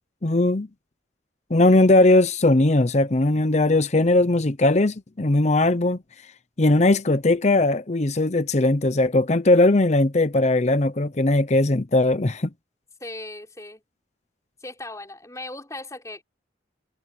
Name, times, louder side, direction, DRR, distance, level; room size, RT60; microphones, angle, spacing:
voice 1, 0.2-0.7 1.5-6.0 6.6-12.5, left 2 dB, 40° left, 0.8 m, -19 dB
voice 2, 13.0-13.8 14.6-16.2, left 2 dB, 15° left, 5.3 m, -38 dB
head